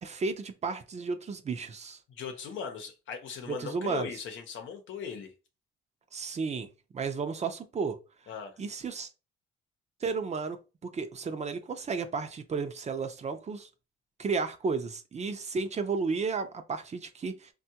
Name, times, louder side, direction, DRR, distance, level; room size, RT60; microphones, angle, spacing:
voice 1, 0.0-2.0 3.5-4.1 6.1-8.0 8.6-9.1 10.0-13.7 14.2-17.5, right 4 dB, 35° right, 0.5 m, -33 dB
voice 2, 2.1-5.3 8.3-8.6, left 6 dB, 75° left, 0.8 m, -39 dB
3.5 x 2.3 x 2.8 m
cardioid pair, 90°, 20 cm